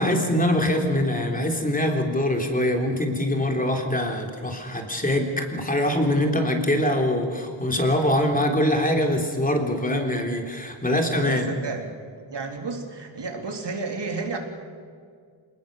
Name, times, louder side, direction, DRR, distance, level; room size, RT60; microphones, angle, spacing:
voice 1, 0.0-11.5, left 1 dB, 20° left, 2 dB, 3.5 m, -23 dB
voice 2, 11.2-11.9 12.3-14.4, right 4 dB, 60° right, 3 dB, 3.6 m, -31 dB
28.0 x 19.5 x 6.7 m, 2.1 s
wide cardioid pair, 130°, 46 cm